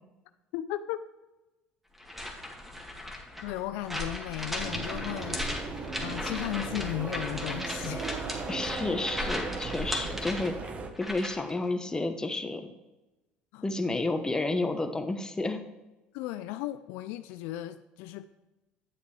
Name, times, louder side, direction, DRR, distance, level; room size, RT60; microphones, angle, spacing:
voice 1, 0.5-1.1 3.4-5.4 5.7-8.3 13.5-13.6 16.1-18.2, left 14 dB, 70° left, 0.4 m, -36 dB
sound 1, 2.0-11.5, left 1 dB, 5° right, 2.2 m, -37 dB
sound 2, 4.6-10.9, right 4 dB, 35° right, 1.3 m, -37 dB
voice 2, 8.5-12.7 13.6-15.6, left 2 dB, 15° left, 1.1 m, -31 dB
10.0 x 8.0 x 3.3 m
hypercardioid pair, 70°, 4 cm